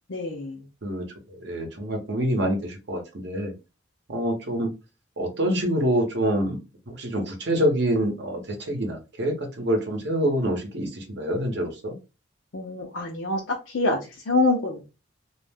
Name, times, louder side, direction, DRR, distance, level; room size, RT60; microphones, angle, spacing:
voice 1, 0.1-0.7 12.5-13.4 13.7-14.9, left 2 dB, 70° left, -1 dB, 0.6 m, -26 dB
voice 2, 0.8-3.6 4.1-4.7 5.2-6.6 6.9-12.0, equal, 60° right, 2 dB, 0.8 m, -26 dB
2.4 x 2.1 x 3.3 m, 0.29 s
head